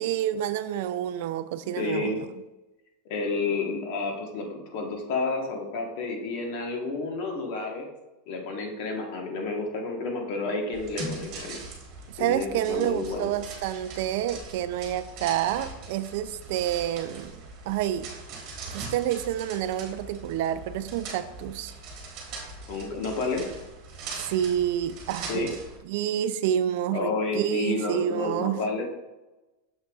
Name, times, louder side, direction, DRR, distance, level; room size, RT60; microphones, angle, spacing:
voice 1, 0.0-2.3 12.1-17.4 17.7-18.1 18.7-21.7 24.2-25.5 25.9-28.6, right 11 dB, 50° right, 13 dB, 0.3 m, -28 dB
voice 2, 1.8-2.2 3.0-7.9 8.3-11.6 12.2-13.3 22.7-23.5 25.3-25.5 26.9-28.8, left 3 dB, 45° left, 2 dB, 1.2 m, -30 dB
sound 1, 10.7-25.8, right 3 dB, 35° right, 1.4 m, -41 dB
6.7 x 6.4 x 2.3 m, 1.0 s
supercardioid pair, 175°, 0 cm